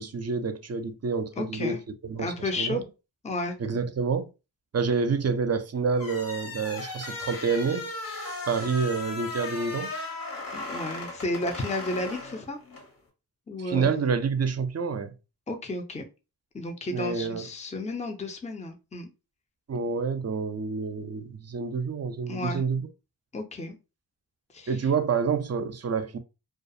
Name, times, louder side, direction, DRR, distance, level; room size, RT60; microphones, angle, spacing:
voice 1, 0.0-1.8 2.0-2.8 3.6-4.3 4.7-7.9 8.5-9.9 13.6-15.1 16.9-17.5 19.7-22.9 24.7-26.2, right 5 dB, 40° right, 0.5 m, -28 dB
voice 2, 1.4-1.8 2.2-2.8 3.2-3.6 10.5-12.6 13.5-13.9 15.5-16.0 16.5-19.1 22.3-22.6 23.3-23.8 24.5-24.7, left 2 dB, 15° left, 0.5 m, -32 dB
sound 1, 5.9-12.9, left 2 dB, 55° left, 1.0 m, -37 dB
2.4 x 2.3 x 2.6 m
cardioid pair, 50°, 40 cm